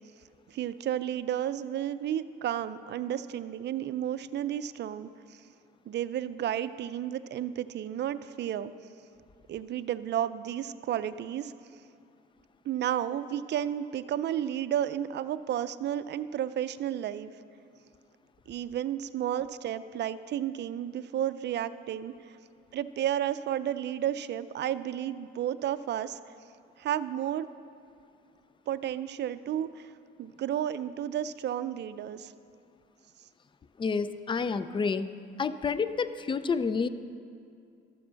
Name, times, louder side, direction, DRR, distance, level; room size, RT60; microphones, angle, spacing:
voice 1, 0.5-5.4 5.9-8.7 9.5-11.5 12.6-17.3 18.5-22.1 22.7-26.2 26.8-27.5 28.7-29.9 30.2-32.3, right 11 dB, 60° right, 13 dB, 0.5 m, -32 dB
voice 2, 33.8-35.1 35.4-36.9, left 5 dB, 25° left, 13 dB, 0.4 m, -29 dB
13.0 x 7.1 x 6.3 m, 2.4 s
cardioid pair, 90°, 20 cm